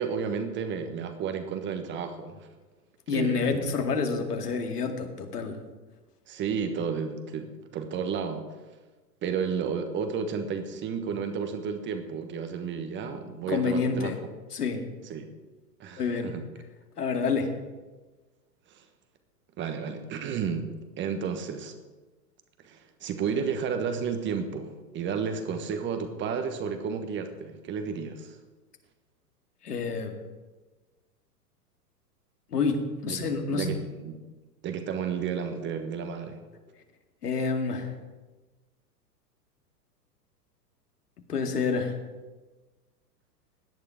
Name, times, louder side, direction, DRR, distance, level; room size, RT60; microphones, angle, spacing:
voice 1, 0.0-2.5 3.1-3.7 6.3-8.5 9.2-14.1 15.1-15.3 15.8-16.5 18.7-18.8 19.6-20.7 21.0-21.7 22.6-28.4 33.1-33.2 33.5-34.2 34.6-36.4, right 6 dB, 25° right, 7 dB, 1.3 m, -32 dB
voice 2, 3.1-5.6 13.5-14.2 14.5-14.9 15.9-16.3 17.0-17.6 29.6-30.2 32.5-33.7 37.2-37.9 41.3-42.0, left 5 dB, 70° left, 5 dB, 2.3 m, -28 dB
17.0 x 11.0 x 5.1 m, 1.2 s
figure-of-eight pair, 100°, 48 cm